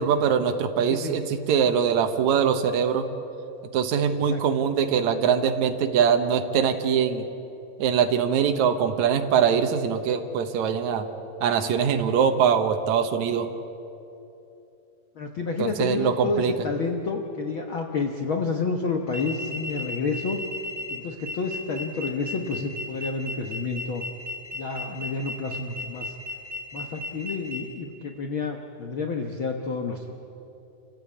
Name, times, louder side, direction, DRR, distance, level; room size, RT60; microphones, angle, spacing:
voice 1, 0.0-3.1 3.7-7.2 7.8-11.1 11.4-13.5 15.6-16.5, right 7 dB, 65° right, 6 dB, 2.2 m, -23 dB
voice 2, 15.2-20.4 20.9-24.0 24.5-26.1 26.7-30.2, left 4 dB, 75° left, 3 dB, 1.1 m, -29 dB
sound 1, 19.1-27.6, left 2 dB, 10° right, 6.1 m, -35 dB
29.0 x 15.5 x 8.5 m, 2.8 s
omnidirectional pair, 4.2 m